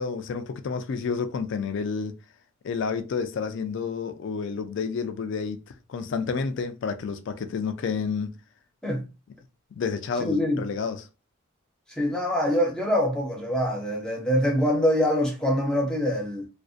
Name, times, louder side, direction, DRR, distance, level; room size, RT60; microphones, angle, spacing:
voice 1, 0.0-2.2 2.6-5.6 5.9-8.4 9.7-11.0, left 5 dB, 60° left, 0.3 m, -30 dB
voice 2, 10.2-10.6 12.0-16.5, equal, 5° left, 0.6 m, -24 dB
2.5 x 2.0 x 2.4 m
head